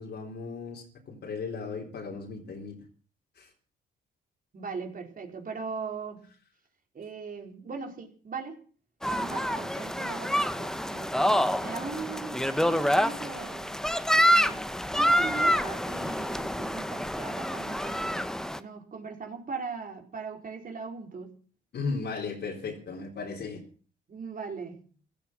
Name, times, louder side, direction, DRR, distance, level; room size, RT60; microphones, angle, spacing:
voice 1, 0.0-2.8 3.4-3.5 21.7-23.6, left 4 dB, 60° left, 0 dB, 3.9 m, -36 dB
voice 2, 4.5-6.2 6.9-8.6 9.0-13.8 14.2-14.6 14.9-21.3 24.1-24.8, right 5 dB, 45° right, 2 dB, 4.4 m, -39 dB
sound 1, 9.0-18.6, equal, 5° left, 1.1 m, -27 dB
15.5 x 13.5 x 6.1 m, 0.42 s
cardioid pair, 90°, 20 cm